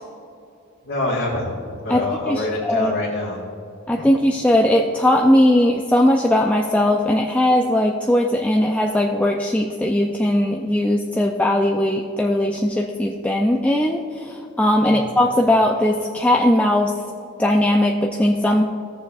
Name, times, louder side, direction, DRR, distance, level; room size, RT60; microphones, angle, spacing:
voice 1, 0.8-1.5 1.8-3.4 14.8-15.0, left 2 dB, 60° left, -7 dB, 1.6 m, -25 dB
voice 2, 1.9-2.9 3.9-16.9 17.4-18.6, left 1 dB, 5° left, 0 dB, 0.3 m, -19 dB
16.0 x 7.0 x 2.4 m, 2.5 s
head